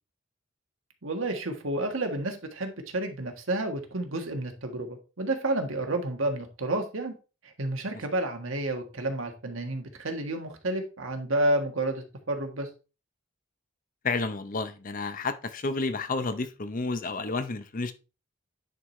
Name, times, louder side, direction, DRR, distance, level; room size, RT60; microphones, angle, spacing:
voice 1, 1.0-7.1 7.4-12.7, right 1 dB, 75° right, 1.5 m, -30 dB
voice 2, 14.0-17.9, left 3 dB, 40° left, 0.7 m, -31 dB
9.9 x 4.7 x 3.2 m
head